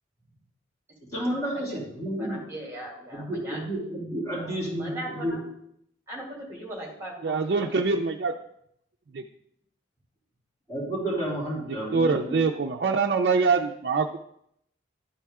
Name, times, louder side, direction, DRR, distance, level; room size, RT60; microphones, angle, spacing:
voice 1, 1.1-2.4 3.1-5.4 10.7-12.4, right 1 dB, 15° left, -7 dB, 2.9 m, -31 dB
voice 2, 2.2-3.6 4.3-5.4 6.1-7.7, right 1 dB, 15° right, -2 dB, 2.2 m, -39 dB
voice 3, 7.2-8.3 9.1-9.2 11.9-14.2, right 4 dB, 55° right, 2 dB, 0.4 m, -24 dB
11.5 x 4.4 x 3.6 m, 0.74 s
head